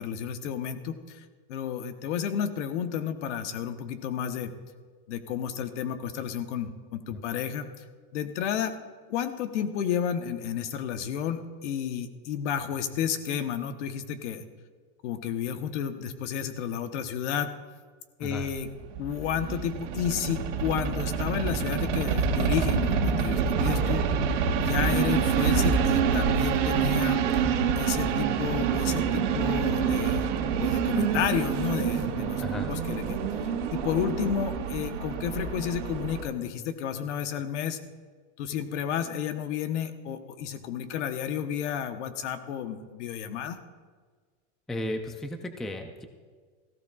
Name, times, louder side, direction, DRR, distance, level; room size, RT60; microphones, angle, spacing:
voice 1, 0.0-4.5 5.1-7.7 8.1-8.8 9.1-14.4 15.0-17.6 18.2-18.7 19.0-24.1 24.6-27.2 27.8-30.2 30.6-32.4 32.7-37.8 38.4-43.6, left 8 dB, 75° left, 9 dB, 1.1 m, -31 dB
voice 2, 18.2-18.5 32.4-32.7 44.7-46.0, left 1 dB, ahead, 6 dB, 0.3 m, -35 dB
sound 1, 18.6-36.2, right 6 dB, 90° right, 1.8 m, -27 dB
17.0 x 15.0 x 2.4 m, 1.5 s
supercardioid pair, 145°, 36 cm